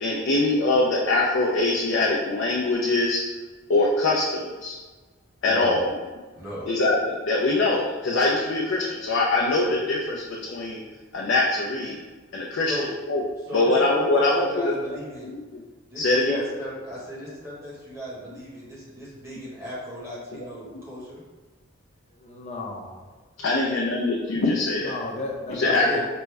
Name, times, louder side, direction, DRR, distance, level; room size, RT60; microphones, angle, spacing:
voice 1, 0.0-3.2 3.7-4.7 5.4-5.9 6.7-10.8 11.1-12.0 12.3-12.7 13.1-13.2 13.5-15.6 15.9-16.4 23.4-24.9 25.6-26.0, left 2 dB, 70° left, -3 dB, 0.5 m, -23 dB
voice 2, 5.5-5.8 6.3-6.7 12.7-12.9 13.5-15.3 15.9-21.2 25.6-26.0, equal, 15° right, -7 dB, 1.3 m, -36 dB
voice 3, 22.1-23.1 24.8-26.0, left 2 dB, 35° left, -1 dB, 0.6 m, -34 dB
5.1 x 2.2 x 3.3 m, 1.3 s
head